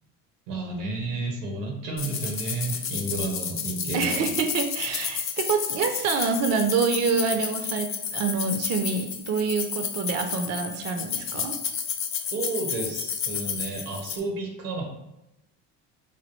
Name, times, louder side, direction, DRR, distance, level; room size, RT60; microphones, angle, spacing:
voice 1, 0.5-4.3 12.3-14.8, right 3 dB, 85° right, 2 dB, 0.9 m, -31 dB
sound 1, 2.0-14.2, left 7 dB, 30° left, 0.4 m, -31 dB
voice 2, 3.9-11.5, right 5 dB, 35° right, 5 dB, 0.4 m, -26 dB
3.2 x 2.2 x 3.0 m, 0.89 s
supercardioid pair, 70°, 45 cm